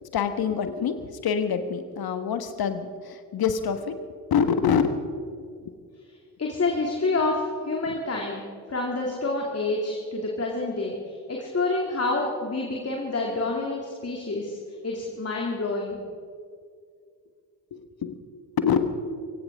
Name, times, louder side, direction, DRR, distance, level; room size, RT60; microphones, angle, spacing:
voice 1, 0.0-3.9 4.3-5.0 5.6-5.7 7.9-8.0 9.1-9.2 17.7-18.2 18.6-18.9, left 7 dB, 50° left, 9 dB, 1.6 m, -26 dB
voice 2, 6.4-8.4 8.7-14.6 14.8-16.0, left 3 dB, 30° left, -1 dB, 2.6 m, -28 dB
23.5 x 16.5 x 3.6 m, 2.1 s
figure-of-eight pair, 45°, 48 cm